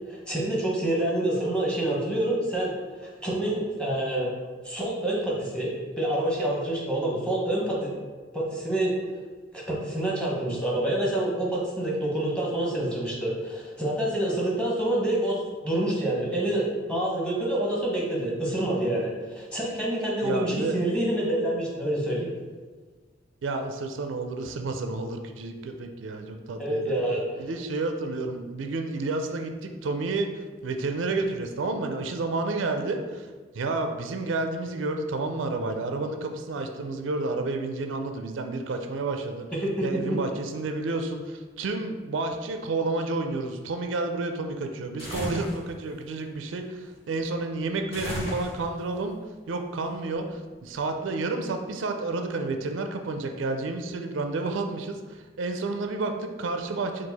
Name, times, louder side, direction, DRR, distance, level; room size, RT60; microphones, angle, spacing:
voice 1, 0.1-2.7 3.0-4.3 4.6-5.7 6.0-7.9 8.3-8.9 9.5-15.4 15.6-22.3 26.6-27.2 39.5-40.2, right 1 dB, 5° left, -4 dB, 0.9 m, -27 dB
voice 2, 20.2-20.8 23.4-26.9 27.4-30.3 30.6-33.3 33.5-39.5 39.8-49.2 49.5-57.1, right 3 dB, 85° right, 5 dB, 0.4 m, -30 dB
sound 1, 45.0-45.6 47.9-48.9, equal, 35° left, 1.3 m, -34 dB
4.5 x 2.4 x 4.0 m, 1.4 s
head